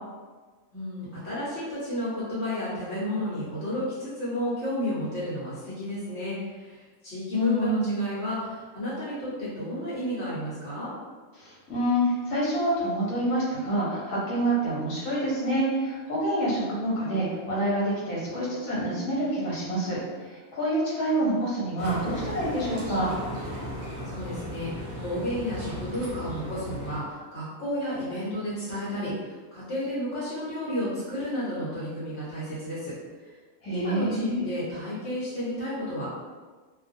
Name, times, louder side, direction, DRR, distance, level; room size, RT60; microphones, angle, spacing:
voice 1, 0.7-10.9 24.0-32.9 33.7-36.1, equal, 55° left, -9 dB, 1.0 m, -32 dB
voice 2, 7.3-8.1 11.4-23.1 33.6-34.5, right 1 dB, 75° left, -6 dB, 1.1 m, -27 dB
sound 1, 21.8-27.0, equal, 55° right, 0.8 m, -36 dB
2.4 x 2.1 x 2.6 m, 1.4 s
omnidirectional pair, 1.5 m